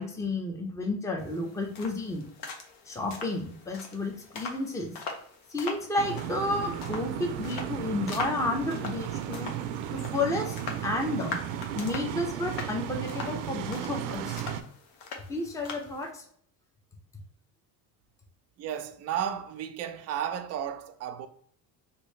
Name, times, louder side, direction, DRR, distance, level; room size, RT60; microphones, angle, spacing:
voice 1, 0.0-2.2 2.9-4.9 5.5-9.5 9.9-11.4 11.8-14.4 15.3-16.2, left 2 dB, 5° left, 0.6 m, -31 dB
sound 1, 1.2-16.1, left 4 dB, 60° left, 0.9 m, -42 dB
sound 2, 6.0-14.6, right 10 dB, 85° right, 0.5 m, -35 dB
voice 2, 18.6-21.3, right 9 dB, 35° right, 0.4 m, -33 dB
3.0 x 2.7 x 3.1 m
supercardioid pair, 95°, 46 cm